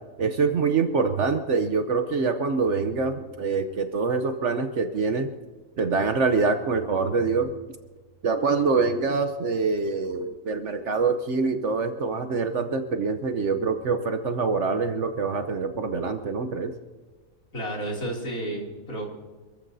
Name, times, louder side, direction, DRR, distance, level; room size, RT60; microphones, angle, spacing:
voice 1, 0.2-5.3 5.8-7.6 8.2-16.7, right 4 dB, 55° right, 7 dB, 1.0 m, -25 dB
voice 2, 17.5-19.0, right 1 dB, 60° left, -1 dB, 3.3 m, -31 dB
26.5 x 14.5 x 2.7 m, 1.4 s
omnidirectional pair, 1.6 m